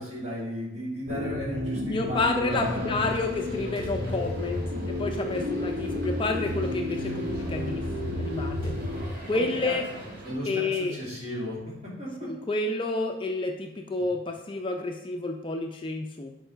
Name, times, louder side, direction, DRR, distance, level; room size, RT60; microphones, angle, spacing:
voice 1, 0.0-2.9 9.3-9.8 10.2-12.3, equal, 35° right, -6 dB, 2.5 m, -35 dB
sound 1, 1.1-9.1, left 1 dB, 75° right, 1.1 m, -32 dB
voice 2, 1.9-7.8 8.2-8.7 9.2-9.8 10.5-11.0 12.2-16.3, left 2 dB, 25° left, 3 dB, 0.4 m, -30 dB
sound 2, 2.5-10.3, equal, 55° right, 1.5 m, -43 dB
6.6 x 4.7 x 4.5 m, 0.92 s
head